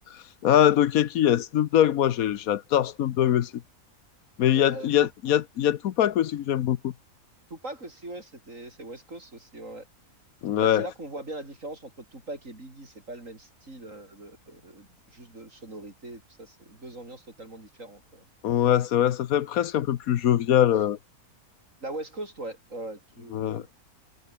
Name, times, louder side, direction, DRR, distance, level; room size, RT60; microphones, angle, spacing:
voice 1, 0.4-3.5 4.4-6.9 10.4-10.9 18.4-21.0 23.3-23.6, left 11 dB, 70° left, 1.2 m, -22 dB
voice 2, 4.5-5.1 7.5-9.9 10.6-18.2 20.7-20.8 21.8-23.7, right 2 dB, 55° right, 6.1 m, -41 dB
omnidirectional pair, 1.6 m